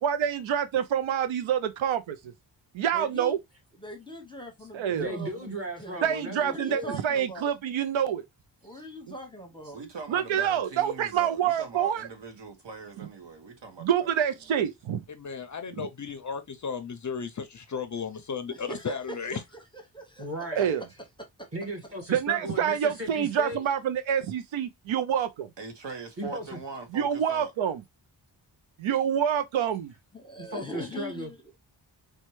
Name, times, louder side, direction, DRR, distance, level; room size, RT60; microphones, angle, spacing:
voice 1, 0.0-2.3 2.7-3.4 4.7-5.2 6.0-8.2 10.1-12.1 13.8-15.0 15.8-15.9 20.5-20.8 22.1-25.5 26.9-27.8 28.8-29.9, right 9 dB, 80° right, 0.6 m, -27 dB
voice 2, 2.9-3.3 3.8-7.5 8.6-9.8 18.5-19.2 19.9-20.3 20.6-20.8 21.2-21.5 30.1-31.6, equal, 10° left, 0.7 m, -41 dB
voice 3, 4.9-7.0 8.6-8.8 20.2-20.7 21.5-23.6 26.2-26.6 30.4-31.3, right 1 dB, 30° right, 1.5 m, -36 dB
voice 4, 9.7-14.1 25.6-27.5, right 4 dB, 65° right, 1.1 m, -41 dB
voice 5, 15.1-19.4, left 6 dB, 40° left, 0.5 m, -35 dB
4.2 x 2.3 x 3.0 m
wide cardioid pair, 145°, 46 cm